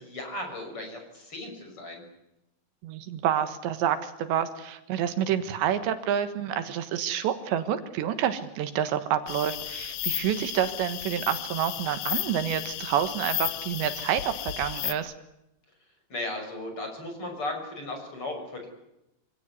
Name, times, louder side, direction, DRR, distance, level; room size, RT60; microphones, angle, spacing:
voice 1, 0.0-2.0 16.1-18.7, left 2 dB, 30° left, 4 dB, 6.8 m, -36 dB
voice 2, 2.8-15.1, right 10 dB, 80° right, 10 dB, 3.6 m, -28 dB
sound 1, 9.3-14.9, left 13 dB, 80° left, 1.8 m, -34 dB
26.0 x 17.5 x 9.6 m, 0.86 s
omnidirectional pair, 5.1 m